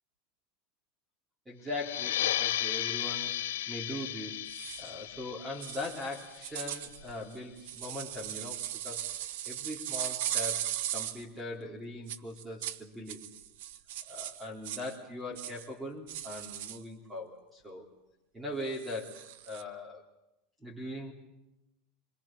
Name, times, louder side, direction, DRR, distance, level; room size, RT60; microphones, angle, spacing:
voice 1, 1.5-4.5 4.8-9.0 9.5-13.2 14.1-17.9 18.3-20.0 20.6-21.1, left 1 dB, 10° right, 0 dB, 3.5 m, -40 dB
sound 1, 1.7-7.0, left 12 dB, 85° left, 1.3 m, -35 dB
sound 2, 4.5-4.9 5.6-11.2 12.1-12.8 13.1-15.0 15.4-15.7 16.1-16.8 18.7-19.6, right 12 dB, 75° right, 1.1 m, -38 dB
27.5 x 21.5 x 7.4 m, 0.93 s
supercardioid pair, 130°, 0 cm